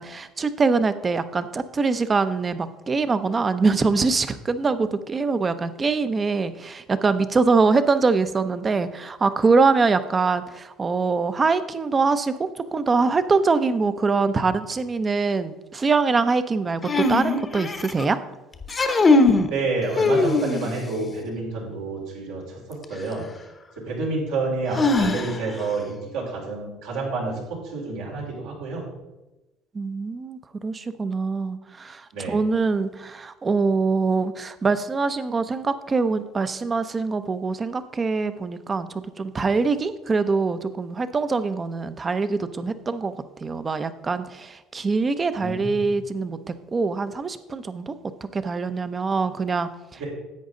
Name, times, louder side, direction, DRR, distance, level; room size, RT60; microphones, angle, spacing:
voice 1, 0.0-18.2 29.7-47.9 48.3-50.1, right 4 dB, 30° right, 12 dB, 0.7 m, -23 dB
sound 1, 16.8-18.0 18.6-19.5 20.0-20.9 22.8-22.9 24.7-25.6, left 3 dB, 30° left, 0.9 m, -20 dB
voice 2, 19.5-22.4 22.7-23.3 23.8-28.8 32.1-32.4 45.4-45.8 50.0-50.1, right 3 dB, 85° right, -4 dB, 3.8 m, -29 dB
10.5 x 8.0 x 3.8 m, 1.1 s
supercardioid pair, 90°, 0 cm